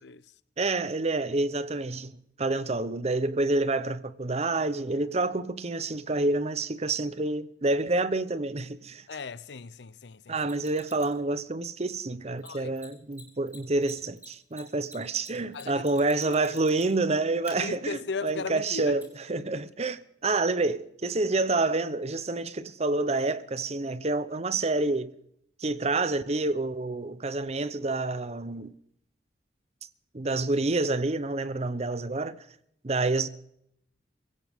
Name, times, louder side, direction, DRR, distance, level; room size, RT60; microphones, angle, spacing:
voice 1, 0.6-9.0 10.3-25.1 25.6-28.7 30.1-32.4 32.8-33.3, right 2 dB, 35° right, 0.8 m, -28 dB
voice 2, 9.1-10.3 12.4-12.8 15.5-15.9 16.2-16.5 17.6-19.0, left 4 dB, 65° left, 0.6 m, -37 dB
Mechanisms, 10.4-11.2 12.4-12.5 12.7-12.9 13.1-13.2 13.5-17.0 17.4-17.5 19.0-19.1, right 1 dB, 10° right, 3.4 m, -48 dB
24.0 x 16.5 x 3.6 m
head